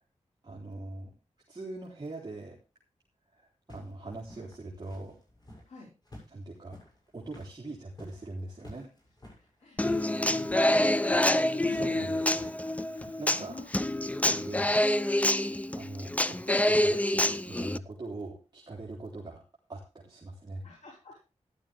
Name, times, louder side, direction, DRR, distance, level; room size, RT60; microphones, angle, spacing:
voice 1, 0.4-1.1 1.5-2.6 3.3-5.1 6.3-6.8 7.1-8.9 11.7-12.2 13.2-13.6 14.2-14.8 15.7-19.4 19.7-20.6, right 2 dB, 35° right, -3 dB, 3.4 m, -41 dB
sound 1, 3.7-5.7 6.0-10.1 10.4-10.7 11.1-11.3 11.7-11.9 12.3-13.1, left 1 dB, 35° left, 7.4 m, -51 dB
voice 2, 9.4-14.4 20.6-21.2, left 3 dB, 75° left, -2 dB, 5.4 m, -49 dB
Human voice / Acoustic guitar, 9.8-17.8, left 1 dB, 10° left, 0.5 m, -27 dB
14.0 x 11.5 x 3.5 m, 0.30 s
wide cardioid pair, 100°, 12 cm